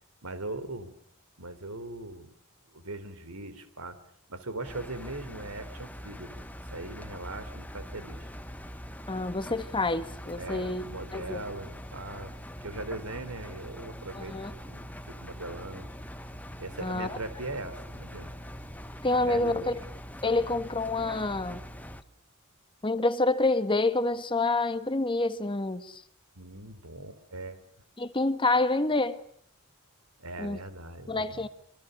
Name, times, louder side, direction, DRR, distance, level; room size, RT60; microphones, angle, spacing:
voice 1, 0.2-0.9 1.4-2.3 2.7-4.0 4.3-6.4 6.7-8.3 10.4-14.4 14.7-15.9 16.6-18.3 19.1-19.8 26.4-27.6 30.2-31.5, right 2 dB, 80° right, 12 dB, 3.8 m, -40 dB
Engine, 4.6-22.0, equal, 5° left, 1.4 m, -43 dB
voice 2, 9.1-10.8 11.1-11.4 14.1-14.5 16.8-17.1 19.0-19.8 20.2-21.6 22.8-26.0 28.0-29.2 30.4-30.6 31.1-31.5, left 2 dB, 25° left, 11 dB, 1.4 m, -27 dB
27.0 x 25.0 x 6.7 m, 0.63 s
head